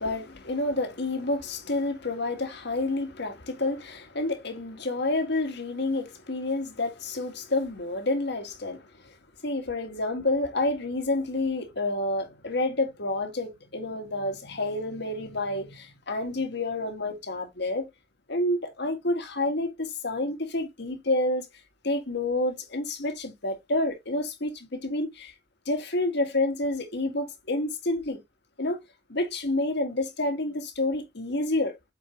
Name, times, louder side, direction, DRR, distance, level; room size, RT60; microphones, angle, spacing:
voice 1, 0.0-9.1 9.4-17.9 18.3-21.5 21.8-25.3 25.7-28.2 28.6-28.8 29.1-31.7, left 2 dB, 60° left, 1.8 m, -29 dB
8.3 x 4.6 x 2.9 m
head